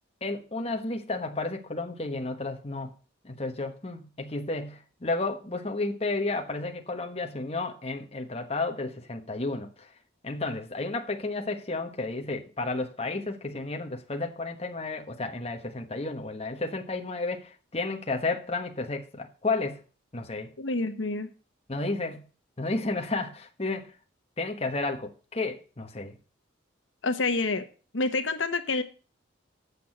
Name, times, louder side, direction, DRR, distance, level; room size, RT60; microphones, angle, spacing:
voice 1, 0.2-2.9 3.2-9.9 10.2-19.8 20.1-20.5 21.7-22.2 22.6-23.9 24.4-26.2, left 3 dB, 30° left, 4 dB, 1.2 m, -32 dB
voice 2, 20.6-21.3 27.0-27.7 27.9-28.8, left 3 dB, 80° left, 8 dB, 1.1 m, -27 dB
8.4 x 6.3 x 7.2 m, 0.36 s
head